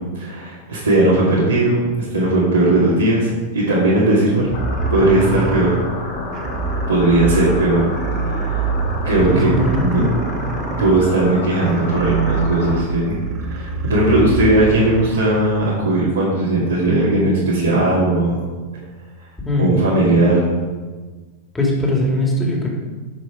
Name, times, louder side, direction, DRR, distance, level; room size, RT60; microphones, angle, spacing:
voice 1, 0.1-1.8 2.1-4.5 4.9-5.8 6.9-7.9 8.3-8.7 9.0-9.5 9.8-10.0 10.8-13.1 13.5-18.4 19.6-20.5, right 2 dB, 75° right, -9 dB, 2.2 m, -17 dB
sound 1, 4.4-15.4, right 4 dB, 35° right, 0.9 m, -25 dB
sound 2, 4.5-12.8, left 2 dB, 50° left, 3.0 m, -29 dB
voice 2, 9.3-10.2 19.4-19.8 21.5-22.7, left 1 dB, 10° left, -1 dB, 2.4 m, -20 dB
8.7 x 6.4 x 4.9 m, 1.3 s
figure-of-eight pair, 90°, 0 cm